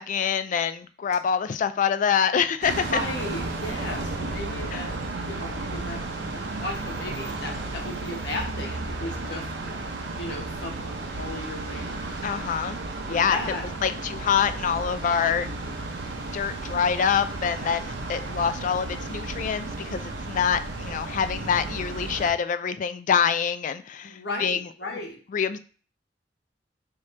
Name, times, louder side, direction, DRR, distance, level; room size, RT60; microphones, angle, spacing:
voice 1, 0.0-2.9 4.7-4.8 12.2-12.8 13.1-13.4 13.8-15.5 16.3-24.6 25.3-25.6, left 7 dB, 45° left, 12 dB, 0.3 m, -25 dB
sound 1, 2.6-22.3, right 2 dB, 80° right, 0.7 m, -33 dB
voice 2, 2.9-4.9 5.3-6.0 6.3-9.5 10.2-12.0 12.4-12.6 13.1-13.6 24.0-25.2, left 1 dB, 70° left, 1 dB, 1.1 m, -35 dB
4.9 x 2.9 x 3.2 m, 0.40 s
head